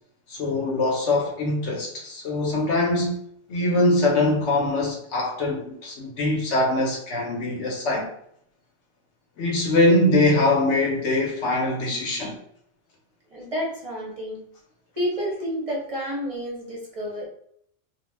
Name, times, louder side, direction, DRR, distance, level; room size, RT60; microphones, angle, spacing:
voice 1, 0.3-3.2 3.5-8.1 9.4-12.4, left 2 dB, 65° left, 0.9 m, -22 dB
voice 2, 13.3-14.4 15.0-17.3, equal, 35° right, 0.6 m, -30 dB
2.4 x 2.1 x 3.1 m
omnidirectional pair, 1.4 m